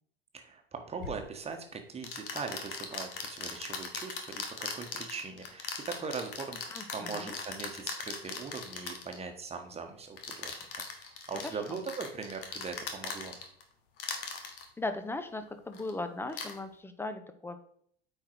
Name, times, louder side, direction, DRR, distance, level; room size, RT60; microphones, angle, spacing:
voice 1, 0.3-6.6 6.9-13.4, right 5 dB, 20° right, 5 dB, 1.3 m, -40 dB
sound 1, 1.0-1.2 2.0-9.2 10.2-13.6 14.0-14.7 15.7-15.9 16.3-16.5, left 5 dB, 60° left, 1.4 m, -39 dB
voice 2, 6.7-7.3 11.7-11.8 14.8-17.6, left 2 dB, 5° left, 9 dB, 0.7 m, -38 dB
8.7 x 4.6 x 4.6 m, 0.64 s
figure-of-eight pair, 70°, 31 cm